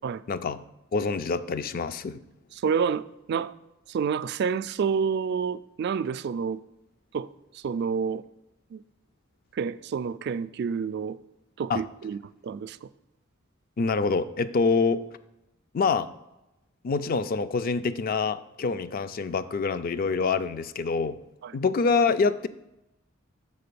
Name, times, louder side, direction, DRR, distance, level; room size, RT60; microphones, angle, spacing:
voice 1, 0.3-0.6 0.9-2.2 11.7-11.8 13.8-15.0 15.7-16.1 16.8-21.2 21.5-22.5, left 4 dB, 45° left, 0.4 m, -26 dB
voice 2, 2.5-3.0 3.3-3.5 3.9-6.6 7.1-7.3 7.5-8.2 8.7-8.8 9.5-11.2 11.6-12.9 21.4-21.5, right 6 dB, 55° right, 0.3 m, -29 dB
6.7 x 4.6 x 6.8 m
head